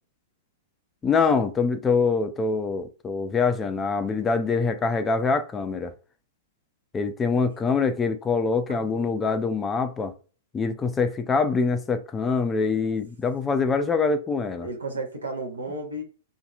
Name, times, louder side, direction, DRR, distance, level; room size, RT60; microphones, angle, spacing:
voice 1, 1.0-5.9 6.9-10.1 10.5-14.7, left 4 dB, 20° left, 0.4 m, -24 dB
voice 2, 8.7-9.1 14.6-16.0, right 2 dB, 80° right, 0.7 m, -33 dB
2.7 x 2.6 x 2.4 m
figure-of-eight pair, 105°, 0 cm